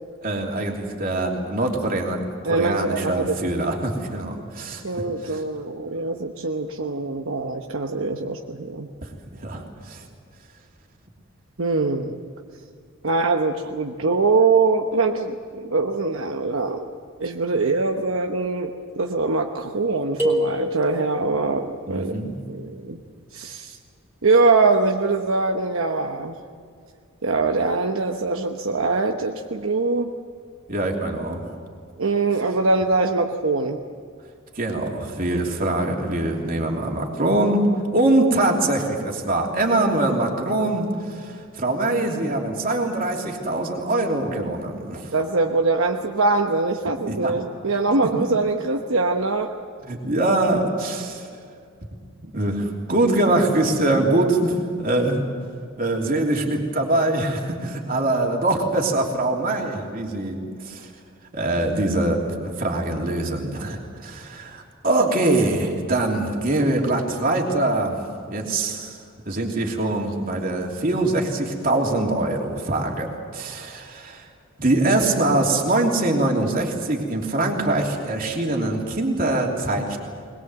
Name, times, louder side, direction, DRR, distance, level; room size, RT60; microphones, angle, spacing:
voice 1, 0.2-2.2 2.4-4.8 5.2-5.4 9.0-9.1 9.4-10.0 21.9-22.4 30.7-31.6 34.5-37.7 37.9-45.1 47.1-47.3 49.8-51.3 52.2-55.2 55.8-60.9 61.3-68.0 68.2-69.0 69.2-74.2 74.6-80.0, right 2 dB, 40° right, 0 dB, 3.1 m, -23 dB
voice 2, 2.4-3.4 4.8-8.9 11.6-12.2 13.0-16.9 17.2-23.0 23.3-23.8 24.2-26.4 27.2-30.1 32.0-33.8 45.1-49.5, right 3 dB, 70° right, 2 dB, 1.1 m, -23 dB
sound 1, 20.2-21.3, equal, 10° right, 3.3 m, -25 dB
21.5 x 21.0 x 8.0 m, 2.2 s
head